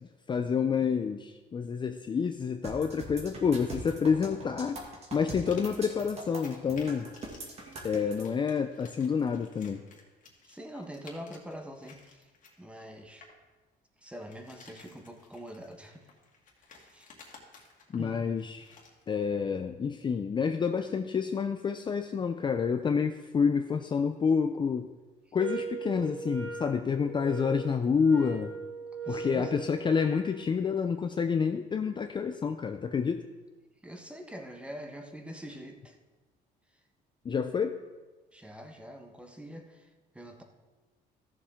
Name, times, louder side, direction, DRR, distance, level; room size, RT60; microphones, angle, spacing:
voice 1, 0.0-4.8 5.1-7.1 7.8-9.8 17.9-18.7 19.1-24.9 25.3-28.5 29.1-33.3 37.2-37.8, left 6 dB, 30° left, 7 dB, 0.5 m, -28 dB
sound 1, 2.6-8.2, right 2 dB, 40° right, 2.2 m, -41 dB
sound 2, 5.1-13.4 14.0-19.1, left 4 dB, 50° left, 2.1 m, -55 dB
voice 2, 10.4-12.3 12.6-13.3 14.0-16.0 16.7-17.1 18.0-18.2 29.0-29.7 33.8-36.0 38.3-40.4, equal, 5° right, 4 dB, 1.2 m, -44 dB
sound 3, 25.4-30.3, right 5 dB, 80° right, 3.3 m, -39 dB
14.5 x 7.0 x 3.7 m, 1.2 s
cardioid pair, 110°, 17 cm